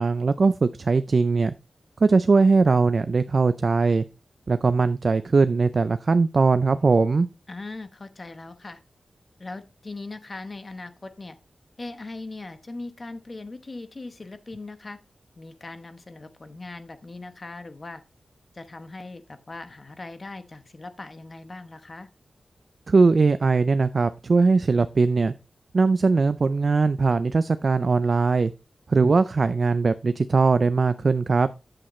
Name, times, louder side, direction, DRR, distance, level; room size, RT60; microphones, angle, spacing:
voice 1, 0.0-1.5 2.0-4.0 4.5-7.3 22.9-25.3 25.7-28.5 28.9-31.5, right 4 dB, 55° right, 12 dB, 0.4 m, -20 dB
voice 2, 7.5-8.8 9.4-11.4 11.8-15.0 15.4-18.0 18.5-22.1, left 2 dB, 40° left, 10 dB, 1.0 m, -39 dB
8.8 x 7.7 x 3.1 m, 0.28 s
wide cardioid pair, 85°, 0 cm